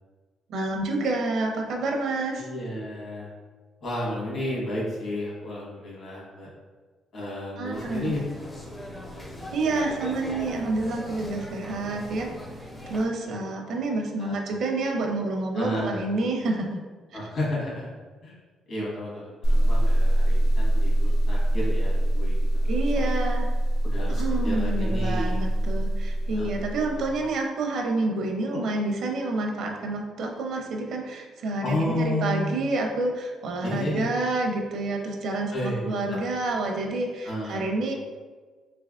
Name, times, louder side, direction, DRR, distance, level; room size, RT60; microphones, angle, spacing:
voice 1, 0.5-2.5 7.6-8.1 9.5-12.3 12.9-16.8 22.7-23.5 24.2-37.9, right 2 dB, 65° right, 2 dB, 0.6 m, -28 dB
voice 2, 2.3-3.3 3.8-6.5 7.1-8.2 13.2-13.3 14.2-14.4 15.5-16.0 17.1-17.9 18.2-18.3 18.7-22.8 23.8-25.5 26.3-26.5 26.8-27.1 28.5-28.6 31.6-32.6 33.6-34.1 35.5-36.2 37.2-37.6, left 1 dB, 55° left, -4 dB, 1.4 m, -32 dB
sound 1, 7.7-13.0, left 1 dB, 15° left, 0.5 m, -39 dB
sound 2, 19.4-27.2, right 1 dB, 85° left, 0.6 m, -24 dB
3.8 x 3.3 x 2.4 m, 1.4 s
cardioid pair, 140°, 0 cm